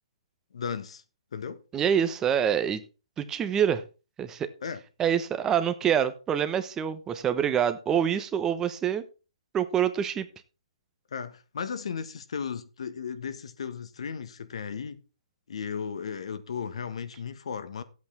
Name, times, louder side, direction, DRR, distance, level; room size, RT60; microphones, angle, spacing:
voice 1, 0.5-1.0 1.3-1.6 4.6-4.8 11.1-15.0 15.5-17.8, left 6 dB, 70° left, 1.5 m, -35 dB
voice 2, 1.7-2.8 3.2-3.8 4.2-4.5 5.0-9.1 9.5-10.3, right 8 dB, 15° right, 1.0 m, -26 dB
12.5 x 8.5 x 4.4 m
hypercardioid pair, 140°, 3 cm